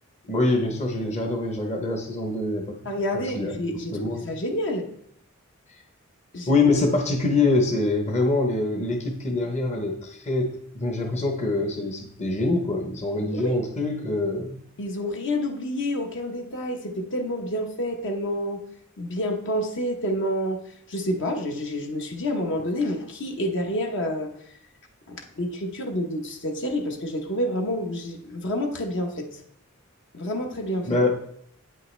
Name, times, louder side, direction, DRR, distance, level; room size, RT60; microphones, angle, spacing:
voice 1, 0.2-2.7 3.1-3.6 3.9-4.3 6.5-14.6 30.8-31.1, left 2 dB, 35° left, 2 dB, 0.9 m, -24 dB
voice 2, 2.8-4.9 6.3-6.5 13.3-13.6 14.8-18.6 19.0-20.6 20.9-24.3 25.1-29.4 30.1-31.0, left 1 dB, 60° left, 2 dB, 1.0 m, -28 dB
8.8 x 5.5 x 3.2 m, 0.67 s
head